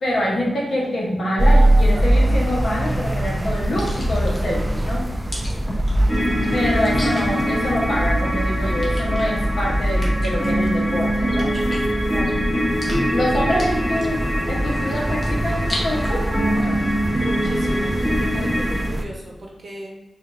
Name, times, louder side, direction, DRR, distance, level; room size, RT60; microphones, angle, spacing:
voice 1, 0.0-5.1 6.5-11.5 13.1-16.8, equal, 70° left, -3 dB, 0.9 m, -25 dB
sound 1, 1.4-19.0, right 1 dB, 15° right, 0.3 m, -23 dB
sound 2, 2.1-16.1, equal, 25° left, 1.2 m, -38 dB
sound 3, 6.1-18.8, equal, 5° left, 1.0 m, -24 dB
voice 2, 12.1-12.4 17.2-20.0, right 1 dB, 55° right, -1 dB, 0.7 m, -36 dB
4.4 x 2.5 x 2.6 m, 1.0 s
cardioid pair, 60°, 0 cm